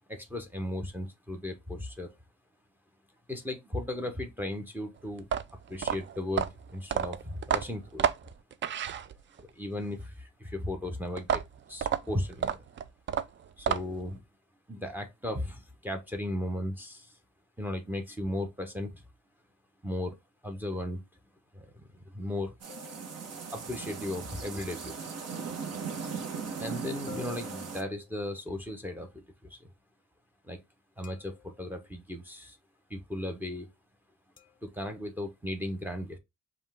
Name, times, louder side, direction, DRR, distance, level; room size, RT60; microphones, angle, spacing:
voice 1, 0.1-2.1 3.3-8.1 9.4-11.4 11.7-12.6 13.6-14.2 14.7-17.2 17.6-19.0 19.8-20.2 20.4-21.0 21.5-22.5 23.5-24.9 26.6-29.2 29.5-29.6 30.4-30.6 31.0-32.6 32.9-33.7 34.6-36.2, left 1 dB, 5° right, 0.8 m, -36 dB
sound 1, 5.2-9.5 11.2-14.1, right 8 dB, 40° right, 0.4 m, -31 dB
sound 2, 22.6-27.8, right 5 dB, 55° right, 1.1 m, -38 dB
sound 3, 22.7-23.8 27.1-28.5 31.0-31.8 34.4-34.7, left 12 dB, 25° left, 0.5 m, -51 dB
5.3 x 2.4 x 3.4 m
cardioid pair, 90°, 30 cm